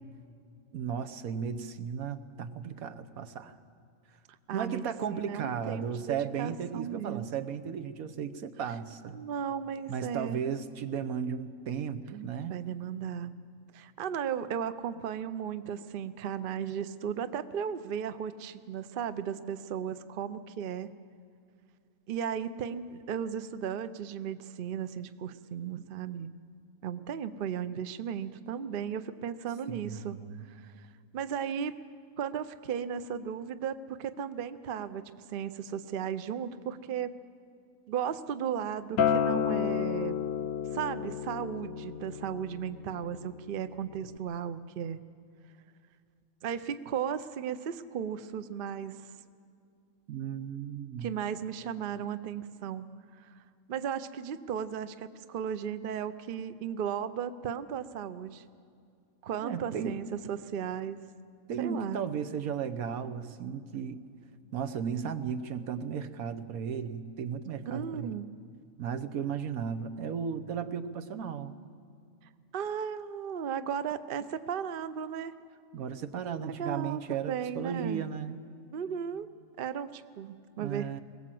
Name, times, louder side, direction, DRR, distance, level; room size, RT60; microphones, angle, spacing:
voice 1, 0.7-3.6 4.5-9.2 9.9-12.6 29.7-30.4 50.1-51.1 59.4-60.0 61.5-64.0 64.5-68.1 68.8-71.5 75.7-78.4 80.6-81.0, right 7 dB, 80° right, 10 dB, 1.3 m, -35 dB
voice 2, 4.5-7.2 9.1-10.4 12.5-13.3 13.7-20.9 22.1-26.3 26.8-30.2 30.5-30.7 31.1-31.8 32.2-37.1 37.9-40.1 40.7-45.0 46.4-49.1 51.0-52.9 53.2-53.3 53.7-58.4 59.2-61.1 61.6-62.0 67.7-68.2 72.5-75.3 76.4-77.0 77.3-78.0 78.7-79.3 79.6-81.0, right 8 dB, 50° right, 12 dB, 0.7 m, -35 dB
Acoustic guitar, 39.0-44.2, left 8 dB, 75° left, 1.1 m, -32 dB
21.0 x 18.0 x 7.7 m, 2.3 s
omnidirectional pair, 1.5 m